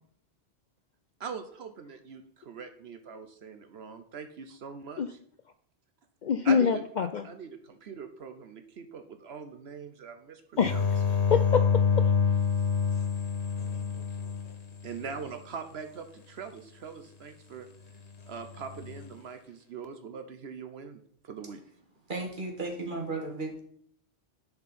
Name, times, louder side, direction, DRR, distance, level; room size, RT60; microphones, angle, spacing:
voice 1, 1.2-5.2 6.4-6.8 7.2-10.8 14.8-17.7 18.3-21.0 21.2-21.6, right 6 dB, 65° right, 8 dB, 1.0 m, -42 dB
voice 2, 6.2-7.2 10.6-10.7 11.3-12.1, left 6 dB, 55° left, 9 dB, 0.5 m, -25 dB
sound 1, 10.6-15.2 18.5-19.0, left 6 dB, 70° left, 1.6 m, -27 dB
voice 3, 22.1-23.6, right 3 dB, 45° right, 2 dB, 1.9 m, -34 dB
10.5 x 5.6 x 4.2 m, 0.62 s
omnidirectional pair, 1.2 m